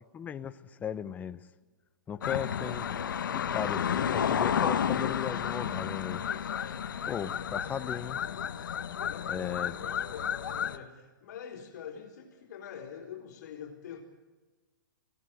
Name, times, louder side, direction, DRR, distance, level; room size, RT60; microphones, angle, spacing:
voice 1, 0.1-1.4 2.1-6.2 7.1-8.2 9.3-9.7, left 8 dB, 15° left, 12 dB, 0.8 m, -37 dB
voice 2, 2.1-2.8 7.0-7.8 9.0-14.0, left 7 dB, 55° left, -1 dB, 4.2 m, -45 dB
sound 1, 2.2-10.8, left 8 dB, 70° left, 1.4 m, -31 dB
22.5 x 17.5 x 8.1 m, 1.3 s
hypercardioid pair, 140°, 11 cm